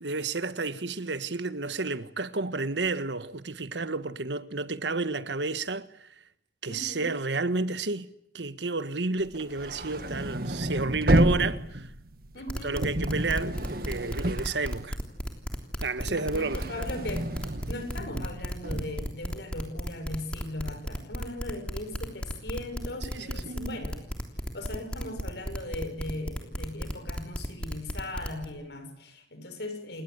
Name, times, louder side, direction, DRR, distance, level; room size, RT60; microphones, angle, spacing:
voice 1, 0.0-6.1 6.6-8.1 8.3-11.9 12.6-15.0 15.8-16.6 23.0-23.8, right 3 dB, 85° right, 1.5 m, -31 dB
voice 2, 6.7-7.1 12.3-12.9 16.0-17.3 17.7-24.1 24.5-30.0, left 1 dB, 75° left, 6.3 m, -38 dB
sound 1, 9.3-15.4 15.7-19.0, right 1 dB, 55° right, 1.9 m, -30 dB
sound 2, 12.5-28.5, equal, 5° left, 3.3 m, -33 dB
28.5 x 21.0 x 8.1 m
head